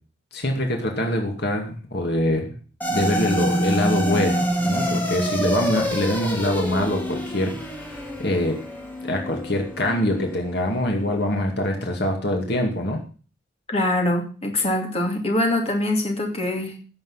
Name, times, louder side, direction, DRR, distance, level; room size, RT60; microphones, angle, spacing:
voice 1, 0.3-2.5 2.9-8.6 9.0-13.0, left 1 dB, 55° left, 2 dB, 2.3 m, -24 dB
sound 1, 2.8-11.3, equal, 10° left, 2.0 m, -27 dB
voice 2, 13.7-16.8, left 1 dB, 30° left, 1 dB, 2.6 m, -23 dB
16.5 x 7.3 x 5.7 m, 0.39 s
head